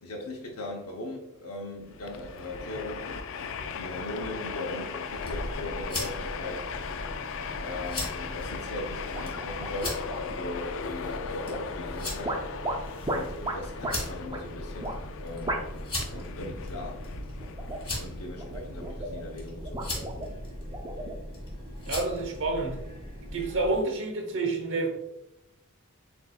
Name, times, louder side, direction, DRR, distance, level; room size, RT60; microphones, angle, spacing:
voice 1, 0.0-3.1 3.7-6.6 7.6-10.0 10.4-12.4 13.1-14.9 15.2-15.6 16.0-17.0 17.9-20.2, left 1 dB, 90° left, 0.8 m, -39 dB
Train, 1.8-19.4, left 5 dB, 60° left, 0.4 m, -38 dB
sound 1, 5.0-23.8, left 1 dB, 25° left, 1.5 m, -39 dB
sound 2, 9.1-10.5 11.5-11.9 12.2-14.0 14.3-14.4 14.8-15.0 15.5-15.8 16.1-16.5 17.4-18.0 18.4-19.2 19.6-21.2, right 1 dB, 20° right, 0.5 m, -35 dB
voice 2, 21.9-22.8 23.3-24.9, right 3 dB, 60° right, 0.9 m, -28 dB
7.6 x 2.6 x 2.3 m
head